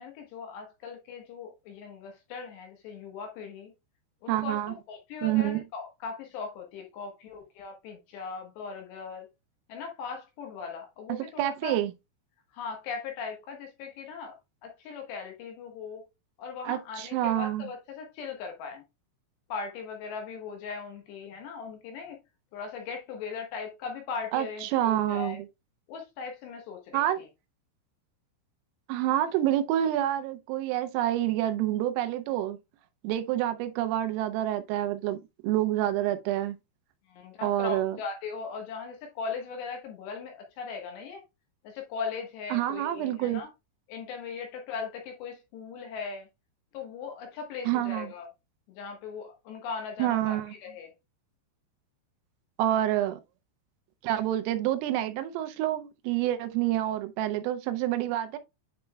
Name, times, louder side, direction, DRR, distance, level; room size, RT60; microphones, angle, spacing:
voice 1, 0.0-3.7 4.2-9.3 9.7-11.8 12.5-14.4 14.6-16.1 16.4-18.8 19.5-22.2 22.5-25.4 25.9-27.3 37.1-41.2 41.6-43.5 43.9-46.3 46.7-48.3 48.7-50.9, left 5 dB, 70° left, 3.0 m, -39 dB
voice 2, 4.3-4.7 5.2-5.6 11.1-11.9 16.7-17.7 24.3-25.5 26.9-27.2 28.9-32.6 33.0-35.2 35.4-36.6 37.4-38.0 42.5-43.4 47.6-48.1 50.0-50.5 52.6-53.2 54.0-58.4, right 13 dB, 85° right, 3.2 m, -28 dB
9.7 x 4.4 x 2.2 m
omnidirectional pair, 5.8 m